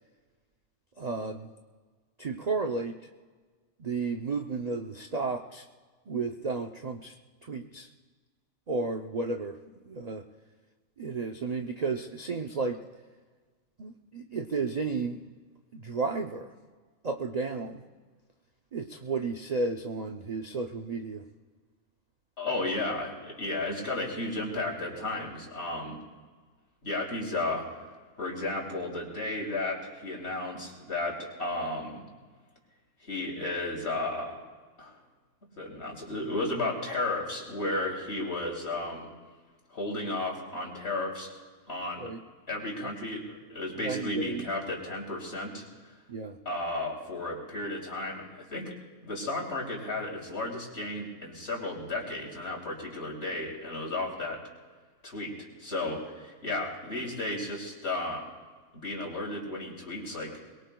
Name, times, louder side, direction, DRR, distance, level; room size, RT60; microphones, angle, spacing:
voice 1, 1.0-1.5 2.2-3.0 3.8-5.6 6.1-7.1 7.4-7.9 8.7-9.6 9.9-10.2 11.0-12.8 13.8-15.3 15.7-16.5 17.0-17.8 18.7-21.3 42.0-42.2 42.8-42.9 43.8-44.5 46.1-46.4, right 4 dB, 45° right, 4 dB, 0.5 m, -33 dB
voice 2, 22.4-26.0 26.8-27.7 28.2-32.0 33.0-34.4 34.8-35.0 35.6-39.1 39.7-41.3 41.7-42.1 42.5-45.6 46.4-48.7 49.0-54.4 55.0-58.2 58.7-60.3, left 2 dB, 45° left, -2 dB, 3.3 m, -33 dB
23.0 x 22.0 x 2.3 m, 1.4 s
omnidirectional pair, 1.5 m